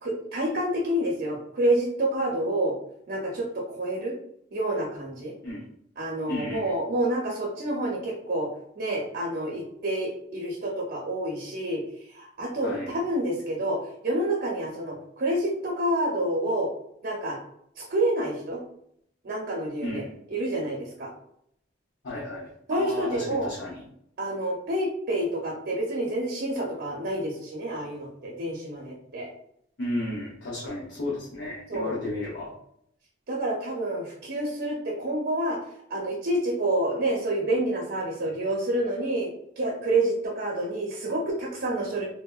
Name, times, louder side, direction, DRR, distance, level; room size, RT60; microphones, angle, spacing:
voice 1, 0.0-2.7 3.1-4.1 4.5-5.3 6.0-8.5 8.8-11.8 12.1-16.7 17.0-17.4 17.8-18.6 19.2-20.0 20.3-21.1 22.7-23.5 24.2-29.3 31.7-31.9 33.3-35.6 35.9-39.3 39.6-42.0, right 1 dB, 60° right, -3 dB, 0.6 m, -28 dB
voice 2, 6.3-6.6 12.6-12.9 19.8-20.1 22.0-23.9 29.8-32.5, left 1 dB, 65° left, -6 dB, 0.7 m, -33 dB
3.3 x 2.1 x 2.3 m, 0.71 s
head